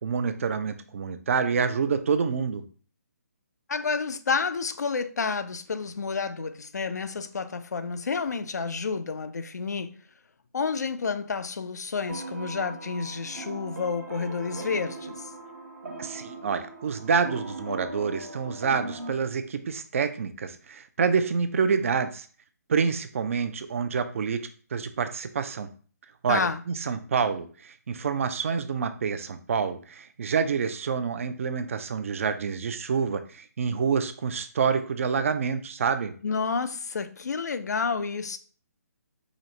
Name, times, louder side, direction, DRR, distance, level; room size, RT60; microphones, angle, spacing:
voice 1, 0.0-2.6 16.0-22.3 22.7-24.4 24.7-25.7 26.2-36.1, right 6 dB, 50° right, 0.4 m, -27 dB
voice 2, 3.7-10.0 10.5-15.3 26.3-26.6 36.2-38.4, left 5 dB, 75° left, 0.4 m, -30 dB
sound 1, 12.1-19.1, right 2 dB, 65° right, 0.9 m, -39 dB
4.9 x 2.0 x 2.7 m
figure-of-eight pair, 145°, 9 cm